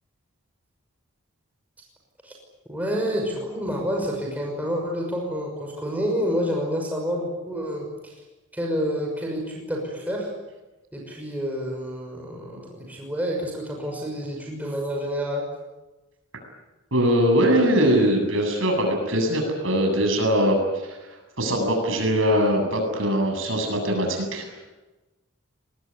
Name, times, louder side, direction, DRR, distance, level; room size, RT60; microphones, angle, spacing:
voice 1, 2.7-8.1 8.5-10.3 10.9-15.4, equal, 5° right, 0 dB, 6.0 m, -28 dB
voice 2, 16.9-21.0 21.4-24.5, equal, 65° right, 3 dB, 8.0 m, -21 dB
24.5 x 20.0 x 9.9 m, 1.1 s
head